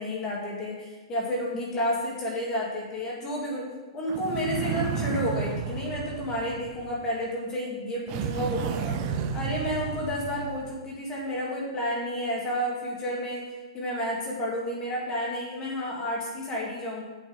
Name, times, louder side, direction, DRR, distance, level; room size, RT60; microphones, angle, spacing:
voice 1, 0.0-3.7 3.9-8.9 9.3-13.4 13.7-17.0, equal, 20° left, -3 dB, 2.4 m, -31 dB
sound 1, 4.1-7.2 8.1-10.8, right 6 dB, 30° right, 0.7 m, -32 dB
7.4 x 7.2 x 5.1 m, 1.3 s
hypercardioid pair, 155°, 3 cm